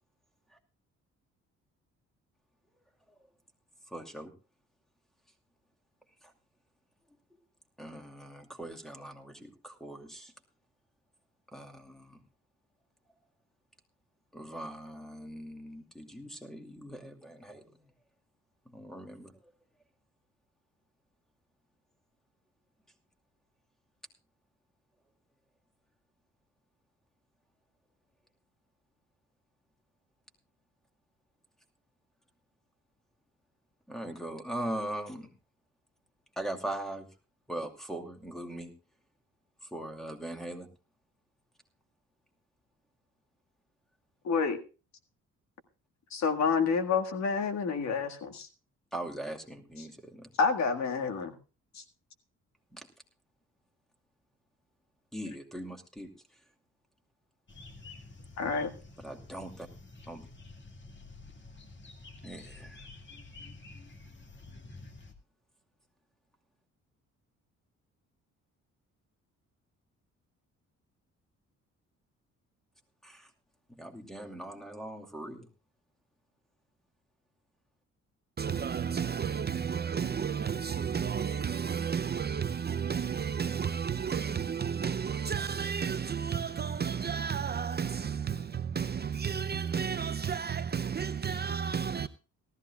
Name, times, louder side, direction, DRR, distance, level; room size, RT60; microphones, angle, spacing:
voice 1, 3.9-4.3 6.2-6.3 7.8-10.3 11.5-12.2 14.3-17.9 18.7-19.4 33.9-35.3 36.4-37.1 37.5-38.7 39.6-40.7 48.9-50.3 52.7-52.9 55.1-56.1 59.0-59.7 60.1-60.3 62.2-62.8 73.0-73.3 73.7-75.5, right 1 dB, ahead, 2.5 m, -40 dB
voice 2, 44.2-44.6 46.1-48.5 49.8-49.9 50.4-51.4 51.7-51.8 58.4-58.7, left 5 dB, 65° left, 1.8 m, -28 dB
sound 1, 57.5-65.1, left 3 dB, 40° left, 2.1 m, -50 dB
voice 3, 78.4-92.1, right 7 dB, 35° right, 0.5 m, -32 dB
18.5 x 14.0 x 2.3 m
cardioid pair, 90°, 30 cm